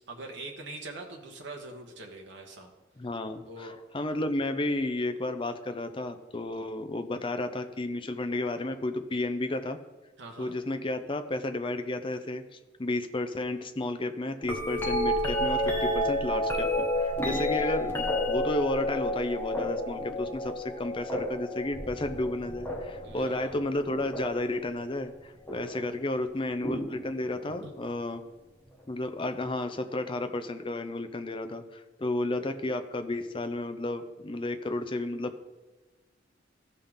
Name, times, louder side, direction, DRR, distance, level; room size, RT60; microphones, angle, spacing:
voice 1, 0.1-2.7 3.5-3.7 10.2-10.5 17.3-17.7 23.0-23.6 27.6-27.7, right 2 dB, 75° right, 2 dB, 1.1 m, -43 dB
voice 2, 3.0-9.8 10.4-12.4 12.8-28.2 28.9-35.4, left 2 dB, 30° left, 8 dB, 0.6 m, -32 dB
sound 1, 14.4-24.5 25.5-25.9 26.6-27.6 29.4-29.5, left 1 dB, 15° left, 1.2 m, -31 dB
14.5 x 5.6 x 3.6 m, 1.2 s
head